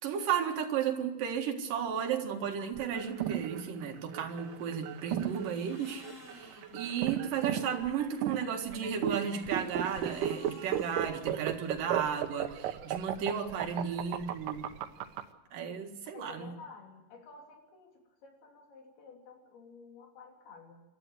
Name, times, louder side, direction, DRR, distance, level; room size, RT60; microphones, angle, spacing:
voice 1, 0.0-6.0 6.3-14.7 15.5-16.5, right 7 dB, 65° right, 4 dB, 3.4 m, -34 dB
sound 1, 2.8-15.2, right 11 dB, 85° right, 2.9 m, -34 dB
sound 2, 4.1-7.2 8.7-12.0, left 2 dB, 25° left, 4.3 m, -55 dB
voice 2, 6.6-6.9 7.4-7.7 13.3-13.8 16.1-20.8, left 4 dB, 80° left, 2 dB, 5.1 m, -52 dB
27.0 x 13.0 x 7.9 m, 1.1 s
omnidirectional pair, 4.4 m